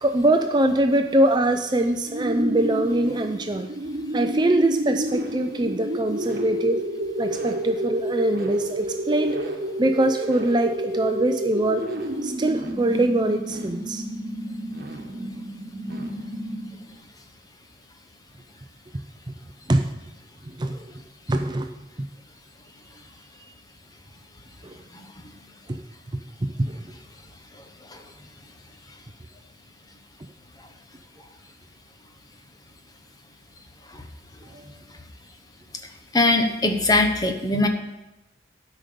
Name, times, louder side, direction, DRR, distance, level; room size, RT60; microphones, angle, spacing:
voice 1, 0.0-3.7 4.1-6.8 7.2-9.4 9.8-11.9 12.2-14.0 19.3-19.4 19.7-19.9 20.5-20.7 21.3-21.7 24.6-24.8 25.7-25.8 26.4-26.8 34.5-34.7, right 1 dB, 25° right, 6 dB, 0.5 m, -23 dB
sound 1, 2.1-16.9, right 1 dB, 55° right, 1.4 m, -30 dB
voice 2, 36.1-37.7, left 2 dB, 20° left, 5 dB, 0.9 m, -21 dB
12.5 x 5.2 x 6.7 m, 1.0 s
head